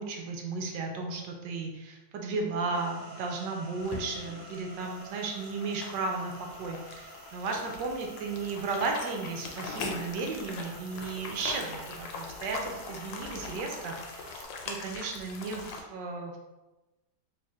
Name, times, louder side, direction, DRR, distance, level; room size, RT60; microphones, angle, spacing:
voice 1, 0.0-16.4, right 3 dB, 75° right, 2 dB, 1.2 m, -34 dB
sound 1, 2.7-14.4, right 1 dB, 60° right, 1.3 m, -49 dB
sound 2, 3.8-15.8, left 4 dB, 75° left, 1.2 m, -41 dB
4.4 x 3.2 x 2.3 m, 1.1 s
omnidirectional pair, 2.0 m